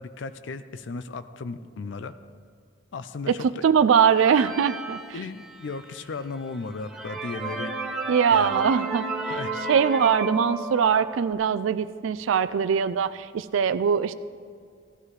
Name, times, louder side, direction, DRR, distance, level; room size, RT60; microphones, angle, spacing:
voice 1, 0.0-2.2 2.9-3.6 5.1-7.7 8.3-8.6 9.3-9.5, left 4 dB, 65° left, 11 dB, 0.4 m, -35 dB
voice 2, 3.3-5.2 8.1-9.4 9.7-14.1, right 7 dB, 80° right, 12 dB, 0.4 m, -22 dB
sound 1, 4.1-5.8 6.3-6.4 6.8-11.3, right 3 dB, ahead, 1.3 m, -32 dB
16.5 x 12.0 x 3.2 m, 2.2 s
head